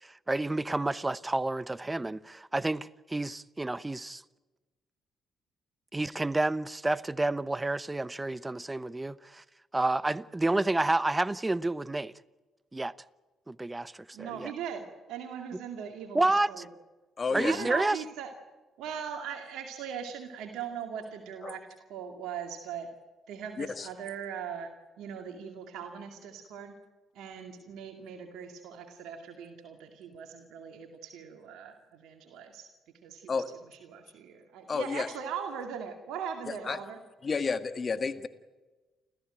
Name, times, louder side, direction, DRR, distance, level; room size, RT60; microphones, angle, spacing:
voice 1, 0.0-4.2 5.9-9.4 9.7-12.1 12.7-12.9 13.5-14.5 16.1-16.7 17.3-18.0, right 2 dB, 20° right, 0.9 m, -30 dB
voice 2, 14.1-16.6 17.3-18.3 18.8-22.9 23.3-24.7 25.0-26.7 27.1-32.7 33.0-33.3 33.9-37.0, right 7 dB, 75° right, 2.2 m, -40 dB
voice 3, 17.2-17.7 21.4-21.6 23.6-23.9 33.3-33.5 34.7-35.1 36.5-36.8 37.2-38.3, left 5 dB, 45° left, 1.8 m, -31 dB
30.0 x 14.5 x 8.9 m
hypercardioid pair, 55°, 0 cm